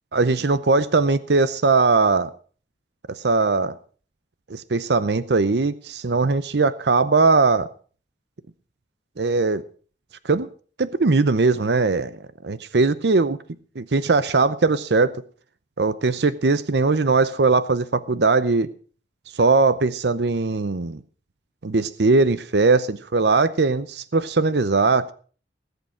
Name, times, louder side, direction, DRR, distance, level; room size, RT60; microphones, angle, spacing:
voice 1, 0.1-2.3 3.1-3.7 4.5-7.7 9.2-9.6 10.2-10.5 10.8-12.1 12.4-13.4 13.8-15.1 15.8-18.7 19.4-21.0 21.6-25.1, right 3 dB, 70° right, 0.7 m, -20 dB
18.5 x 8.1 x 6.1 m
head